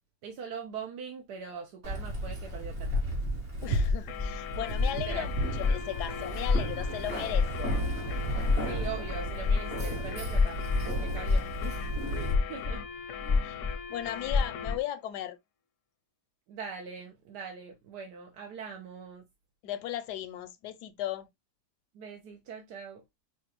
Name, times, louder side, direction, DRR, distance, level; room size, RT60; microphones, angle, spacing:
voice 1, 0.2-3.4 4.9-5.3 8.6-10.6 11.0-11.8 12.1-12.8 13.2-13.6 16.5-19.3 21.9-23.0, right 6 dB, 80° right, 1.3 m, -42 dB
Keys jangling, 1.8-12.3, right 1 dB, 60° right, 2.2 m, -34 dB
sound 1, 2.8-3.4 3.8-6.1 6.4-7.0 7.3-7.8 8.3-9.9 10.2-10.9 11.1-11.9 12.2-12.8 13.2-13.8 14.0-14.8, left 4 dB, 50° left, 0.3 m, -27 dB
voice 2, 3.6-5.3 5.6-7.7 13.4-13.6 13.9-15.4 19.6-21.3, left 12 dB, 85° left, 1.2 m, -36 dB
sound 2, 4.1-14.8, left 7 dB, 65° left, 0.8 m, -40 dB
5.8 x 2.3 x 2.9 m
omnidirectional pair, 1.7 m